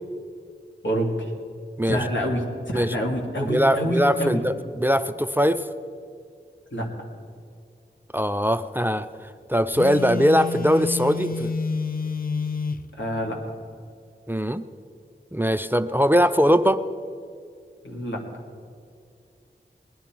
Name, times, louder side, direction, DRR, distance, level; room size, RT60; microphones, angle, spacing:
voice 1, 0.8-1.3 1.9-4.4 6.7-6.9 12.9-13.4 17.8-18.2, equal, 80° left, -1 dB, 2.4 m, -27 dB
voice 2, 3.4-5.7 8.1-9.1 9.5-11.5 14.3-14.6 15.3-16.8, equal, 10° right, 11 dB, 0.5 m, -21 dB
Telephone, 9.7-12.9, left 5 dB, 50° left, 0.7 m, -29 dB
20.0 x 11.0 x 4.5 m, 2.4 s
wide cardioid pair, 45°, 19 cm